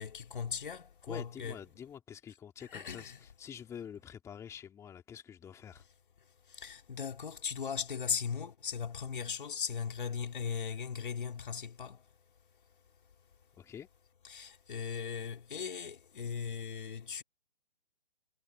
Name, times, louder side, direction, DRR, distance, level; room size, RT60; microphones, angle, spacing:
voice 1, 0.0-1.6 2.6-3.2 6.2-12.1 14.2-17.2, left 6 dB, 60° left, 4.7 m, -38 dB
voice 2, 1.1-5.8 13.6-13.9, left 8 dB, 10° left, 3.0 m, -47 dB
figure-of-eight pair, 145°, 30 cm